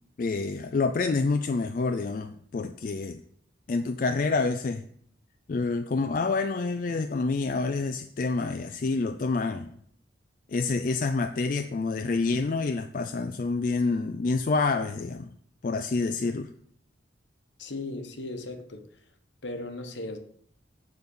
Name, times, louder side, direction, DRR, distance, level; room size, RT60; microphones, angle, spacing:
voice 1, 0.2-3.2 3.7-4.9 5.5-9.7 10.5-15.3 15.6-16.5, left 3 dB, 45° left, 0.3 m, -27 dB
voice 2, 17.6-18.9 19.4-20.2, left 2 dB, 70° left, 1.1 m, -37 dB
9.0 x 4.1 x 6.9 m
head